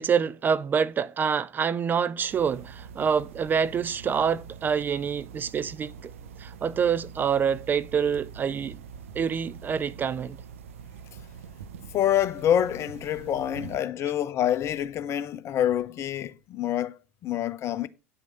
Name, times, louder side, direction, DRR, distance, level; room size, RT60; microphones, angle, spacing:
voice 1, 0.0-6.1 6.4-8.8 9.1-10.4, right 7 dB, 25° right, 0.4 m, -26 dB
sound 1, 2.3-13.8, right 6 dB, 70° right, 0.9 m, -44 dB
voice 2, 11.9-17.0 17.2-17.9, left 10 dB, 35° left, 0.8 m, -26 dB
9.9 x 6.1 x 5.3 m
figure-of-eight pair, 80°, 8 cm